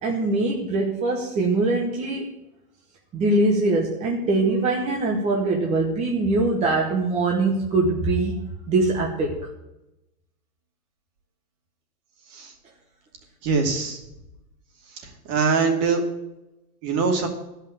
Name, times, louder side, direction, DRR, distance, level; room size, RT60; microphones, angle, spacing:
voice 1, 0.0-2.2 3.1-8.4 8.7-9.3, right 2 dB, 15° right, -1 dB, 1.0 m, -22 dB
voice 2, 13.4-14.0 15.3-16.0 16.8-17.3, right 4 dB, 40° right, 2 dB, 2.5 m, -22 dB
12.5 x 5.8 x 9.2 m, 0.92 s
hypercardioid pair, 155°, 45 cm